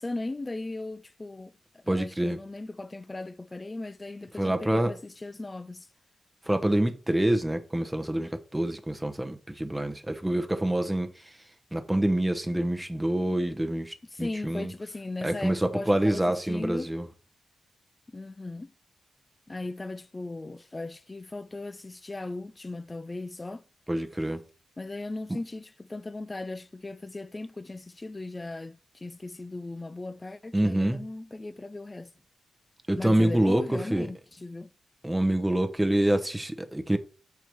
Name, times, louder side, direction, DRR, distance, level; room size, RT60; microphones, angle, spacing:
voice 1, 0.0-5.9 14.1-16.9 18.1-18.7 19.5-23.6 24.8-32.1 33.0-34.7, left 2 dB, 25° left, 0.5 m, -37 dB
voice 2, 1.9-2.4 4.4-4.9 6.5-11.1 11.7-14.7 15.2-17.1 23.9-24.4 25.3-25.4 30.5-31.0 32.9-34.1 35.0-37.0, right 1 dB, 10° right, 0.9 m, -26 dB
6.8 x 4.6 x 4.6 m
cardioid pair, 70°, 0 cm